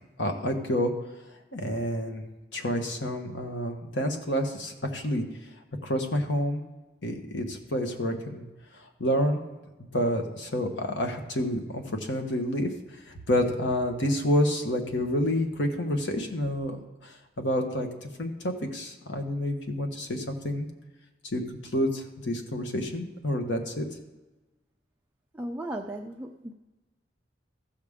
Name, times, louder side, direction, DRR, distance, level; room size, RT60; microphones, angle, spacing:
voice 1, 0.2-0.9 1.5-2.2 2.5-5.2 5.8-6.6 7.0-8.4 8.8-9.4 9.9-12.7 13.1-16.8 17.0-20.7 21.3-21.4 21.7-23.8, equal, 75° left, 4 dB, 1.3 m, -28 dB
voice 2, 25.3-26.5, right 1 dB, 10° right, 0 dB, 0.5 m, -36 dB
14.5 x 6.8 x 3.6 m, 1.1 s
head